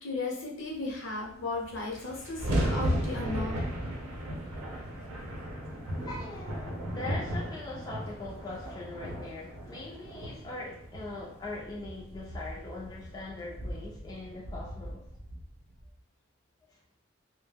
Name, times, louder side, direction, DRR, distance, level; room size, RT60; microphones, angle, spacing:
voice 1, 0.0-3.6, left 2 dB, 65° left, -2 dB, 0.7 m, -35 dB
sound 1, 1.2-1.3 1.5-15.9, equal, 85° right, 0.6 m, -36 dB
voice 2, 6.0-15.2 16.7-16.8, left 2 dB, 20° left, -4 dB, 0.3 m, -41 dB
2.2 x 2.1 x 3.2 m, 0.68 s
head